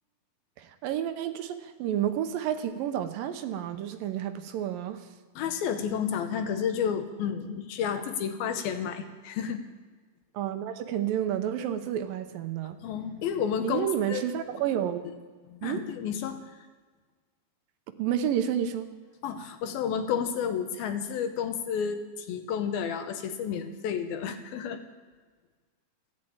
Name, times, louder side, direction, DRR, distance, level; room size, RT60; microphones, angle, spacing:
voice 1, 0.6-5.1 10.3-12.8 13.6-15.0 15.6-15.8 18.0-18.9, right 10 dB, 75° right, 8 dB, 2.5 m, -30 dB
voice 2, 5.4-9.6 12.8-14.2 15.5-16.4 19.2-24.8, left 7 dB, 80° left, 8 dB, 2.9 m, -31 dB
14.5 x 11.0 x 8.8 m, 1.4 s
omnidirectional pair, 4.3 m